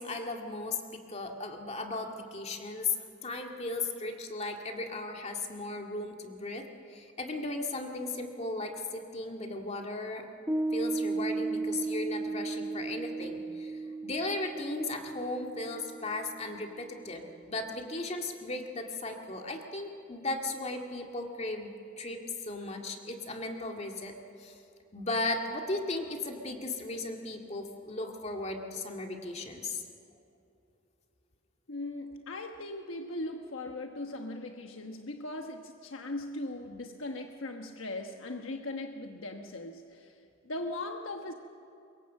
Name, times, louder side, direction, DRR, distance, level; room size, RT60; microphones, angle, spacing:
voice 1, 0.0-3.0 3.2-10.2 10.7-21.7 22.0-24.1 24.4-24.6 24.9-29.8, left 2 dB, 35° left, 2 dB, 2.1 m, -36 dB
Piano, 10.5-17.2, right 3 dB, 10° right, 1.7 m, -35 dB
voice 2, 31.7-41.3, left 2 dB, 85° left, 4 dB, 1.2 m, -39 dB
25.0 x 22.5 x 7.4 m, 2.6 s
head